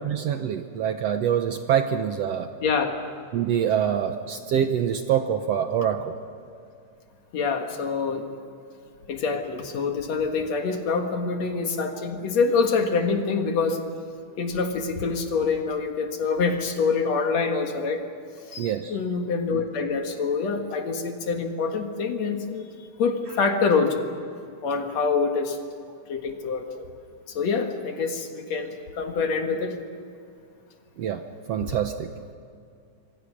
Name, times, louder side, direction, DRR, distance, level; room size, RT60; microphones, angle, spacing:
voice 1, 0.0-2.5 3.3-6.1 18.6-19.0 31.0-31.2 31.5-32.1, right 9 dB, 70° right, 7 dB, 1.6 m, -25 dB
voice 2, 2.6-2.9 7.3-8.2 9.1-13.8 14.4-18.0 18.5-22.7 23.0-24.1 24.6-25.6 26.1-26.9 27.3-29.8, left 4 dB, 60° left, 5 dB, 2.7 m, -26 dB
26.5 x 24.5 x 6.3 m, 2.5 s
omnidirectional pair, 3.6 m